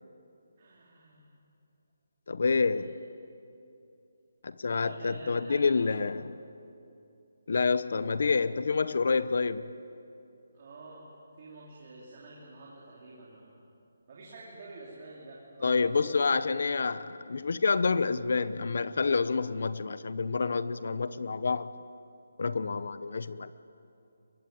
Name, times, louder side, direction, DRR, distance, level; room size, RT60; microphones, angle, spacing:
voice 1, 0.6-1.3 4.8-5.9 10.5-11.1 11.4-13.5 14.1-16.3, right 2 dB, 25° right, -5 dB, 3.1 m, -48 dB
voice 2, 2.3-2.9 4.4-6.3 7.5-9.7 15.6-21.7 22.4-23.5, left 4 dB, 45° left, 15 dB, 0.7 m, -28 dB
23.0 x 22.0 x 9.3 m, 2.7 s
hypercardioid pair, 180°, 0 cm